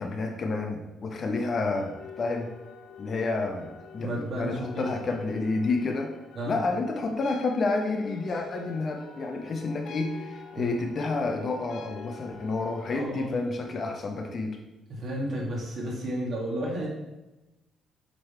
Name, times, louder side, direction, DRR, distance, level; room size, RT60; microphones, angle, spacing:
voice 1, 0.0-2.5 3.0-6.1 6.5-14.6, left 3 dB, 35° left, 4 dB, 0.8 m, -30 dB
sound 1, 1.6-13.0, left 4 dB, 70° left, 1.6 m, -47 dB
voice 2, 4.0-4.9 6.4-6.6 10.6-10.7 12.9-13.4 14.9-16.9, right 1 dB, 45° right, -2 dB, 2.1 m, -32 dB
7.9 x 3.9 x 4.5 m, 1.0 s
cardioid pair, 140°, 0 cm